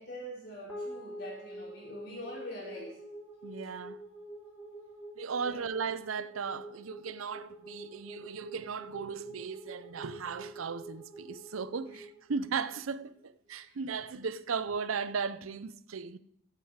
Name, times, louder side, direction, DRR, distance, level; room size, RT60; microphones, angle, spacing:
voice 1, 0.0-3.0 5.4-5.6 13.6-13.8, equal, 50° left, 5.5 m, -44 dB
sound 1, 0.7-13.2, right 1 dB, 10° left, 3.2 m, -47 dB
voice 2, 3.4-4.0 5.2-16.2, right 5 dB, 90° right, 0.6 m, -36 dB
14.5 x 9.1 x 4.8 m
head